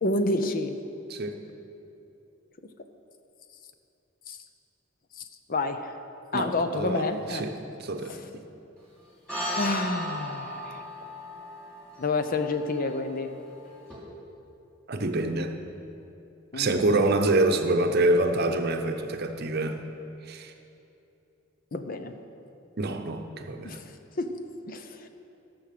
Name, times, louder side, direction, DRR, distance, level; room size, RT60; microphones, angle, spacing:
voice 1, 0.0-0.8 4.3-4.4 5.2-5.3 5.5-5.9 6.3-7.5 8.1-8.3 9.6-10.8 12.0-13.3 16.5-16.8 21.7-22.1 23.6-24.4 24.7-25.1, left 2 dB, 45° left, 8 dB, 0.6 m, -29 dB
voice 2, 6.3-7.5 7.8-8.4 14.9-15.5 16.5-19.8 20.3-20.5 22.8-23.8, right 2 dB, 50° right, 6 dB, 0.8 m, -26 dB
sound 1, 9.3-13.9, right 1 dB, 5° left, 3.1 m, -36 dB
14.0 x 6.2 x 6.7 m, 2.9 s
head